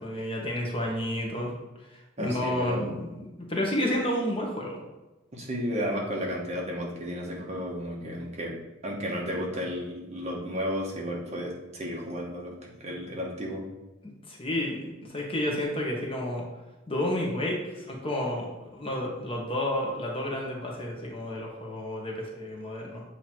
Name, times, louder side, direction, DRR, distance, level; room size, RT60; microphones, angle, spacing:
voice 1, 0.0-1.5 1.9-3.2 3.5-4.8 8.0-8.2 14.3-16.4 16.9-23.0, left 1 dB, 30° left, -1 dB, 1.1 m, -31 dB
voice 2, 2.2-2.9 5.3-8.5 8.8-12.5 12.8-13.6, equal, 35° right, -2 dB, 1.2 m, -33 dB
7.7 x 2.9 x 4.5 m, 1.0 s
head